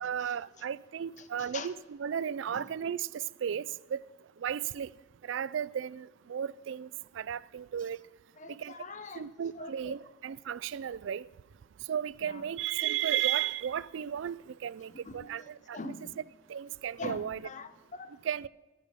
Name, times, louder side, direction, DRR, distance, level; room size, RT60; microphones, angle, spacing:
voice 1, 0.0-4.0 4.4-4.9 5.3-6.9 7.2-8.0 8.6-8.7 9.2-11.3 11.9-15.9 16.5-17.4 18.2-18.5, right 9 dB, 70° right, 0.3 m, -34 dB
voice 2, 1.2-1.7 2.5-2.7 8.4-9.3 9.5-10.0 12.2-12.4 14.9-16.2 17.0-18.2, left 3 dB, 40° left, 0.9 m, -44 dB
13.5 x 12.0 x 5.4 m
head